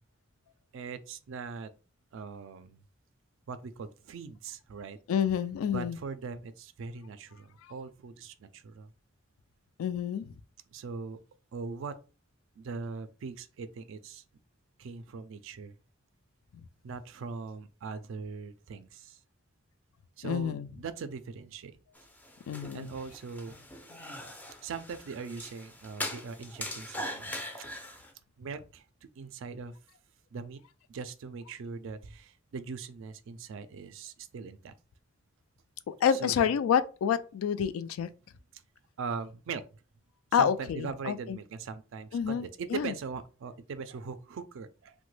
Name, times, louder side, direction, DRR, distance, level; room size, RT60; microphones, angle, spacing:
voice 1, 0.7-1.7 2.1-2.8 3.5-5.0 5.7-8.9 10.7-11.2 11.5-12.0 12.6-14.2 14.8-15.7 16.8-19.2 20.2-21.7 22.7-23.6 24.6-27.4 28.4-28.8 29.2-29.7 30.3-30.6 30.9-34.7 36.1-36.5 39.0-39.6 40.3-44.9, right 5 dB, 65° right, 0.3 m, -40 dB
voice 2, 5.1-6.0 9.8-10.3 20.2-20.7 22.5-22.9 36.0-38.1 40.3-41.4 42.1-42.5 42.7-42.9, left 8 dB, 85° left, 0.3 m, -28 dB
sound 1, 21.9-28.1, left 1 dB, 10° left, 0.4 m, -41 dB
2.9 x 2.1 x 3.1 m
head